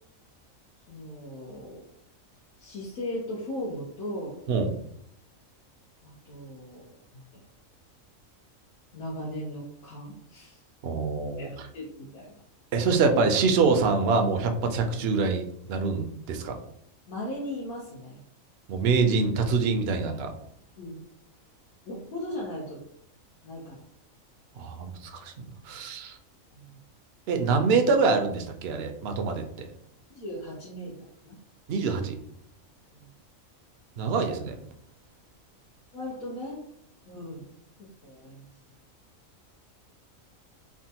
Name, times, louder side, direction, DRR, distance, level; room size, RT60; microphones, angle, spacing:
voice 1, 0.9-1.8 2.6-4.4 6.0-6.8 7.1-7.4 8.9-10.6 11.4-12.3 17.1-18.2 20.8-21.0 21.9-22.8 23.4-23.8 26.5-26.8 30.1-30.9 31.2-31.4 32.9-33.1 35.9-36.6 37.1-37.4 38.0-38.5, left 1 dB, 85° left, -5 dB, 1.2 m, -37 dB
voice 2, 10.8-11.7 12.7-16.6 18.7-20.3 24.6-26.2 27.3-29.7 31.7-32.2 34.0-34.5, right 4 dB, 65° right, 5 dB, 0.6 m, -25 dB
3.5 x 2.1 x 2.7 m, 0.70 s
omnidirectional pair, 1.4 m